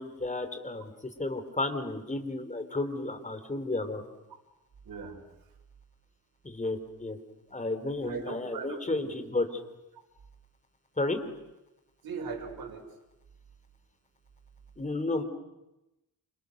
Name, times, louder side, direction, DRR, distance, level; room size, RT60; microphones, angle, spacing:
voice 1, 0.0-4.0 6.4-7.2 7.5-9.5 11.0-11.2 14.8-15.2, left 2 dB, 20° left, 8 dB, 3.9 m, -32 dB
voice 2, 4.8-5.2 8.0-9.1 12.0-12.9, right 4 dB, 75° right, 1 dB, 5.5 m, -39 dB
29.0 x 28.0 x 6.8 m, 0.96 s
cardioid pair, 100°, 36 cm